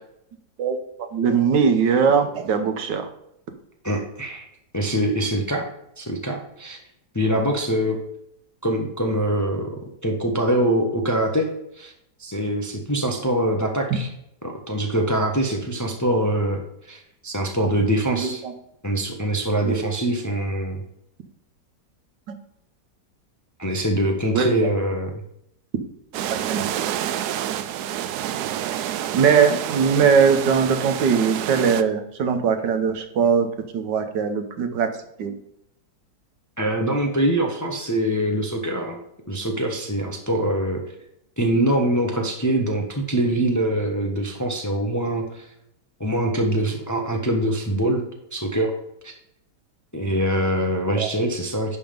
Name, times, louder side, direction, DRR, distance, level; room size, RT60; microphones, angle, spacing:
voice 1, 1.1-3.1 13.9-14.0 18.1-18.5 19.6-20.0 22.3-22.4 24.3-24.5 26.5-26.7 29.1-34.9 35.2-35.4 50.9-51.1, right 6 dB, 90° right, 8 dB, 1.6 m, -20 dB
voice 2, 3.8-4.4 4.7-5.7 6.0-6.8 7.1-8.0 8.6-11.5 11.7-11.9 12.2-14.1 14.4-18.4 18.8-20.8 23.6-25.1 36.6-39.0 39.3-40.8 41.4-45.5 46.0-48.1 48.3-48.7 49.0-49.1 49.9-51.8, right 1 dB, 15° left, 2 dB, 0.6 m, -24 dB
sound 1, 26.1-31.8, right 11 dB, 75° right, 1.0 m, -28 dB
10.5 x 3.7 x 5.2 m, 0.79 s
omnidirectional pair, 1.9 m